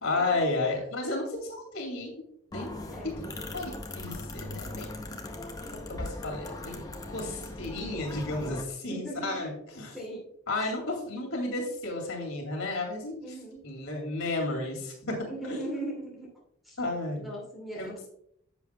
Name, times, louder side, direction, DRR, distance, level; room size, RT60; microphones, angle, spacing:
voice 1, 0.0-2.1 2.5-2.7 3.0-4.9 5.7-10.0 10.5-13.4 13.6-15.6 16.8-17.2 17.8-18.1, left 2 dB, 75° left, 1 dB, 2.4 m, -33 dB
sound 1, 2.5-8.6, left 1 dB, 15° left, 0.7 m, -39 dB
voice 2, 2.9-3.2 8.9-9.4 9.9-10.2 13.2-13.6 15.3-16.3 16.6-16.8 17.2-17.8, right 1 dB, ahead, -3 dB, 2.4 m, -38 dB
10.0 x 7.0 x 2.2 m, 0.70 s
head